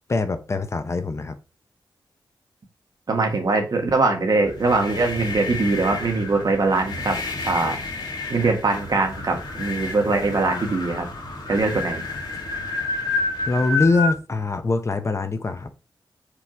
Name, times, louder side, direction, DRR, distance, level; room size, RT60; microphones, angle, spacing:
voice 1, 0.1-1.4 13.5-15.7, left 3 dB, 35° left, 0.8 m, -23 dB
voice 2, 3.1-7.2 7.4-7.8 8.3-11.1 11.5-12.0, right 3 dB, 55° right, 1.7 m, -22 dB
sound 1, 4.4-14.2, left 3 dB, 65° left, 2.3 m, -30 dB
5.9 x 3.9 x 4.5 m
wide cardioid pair, 105°, 8 cm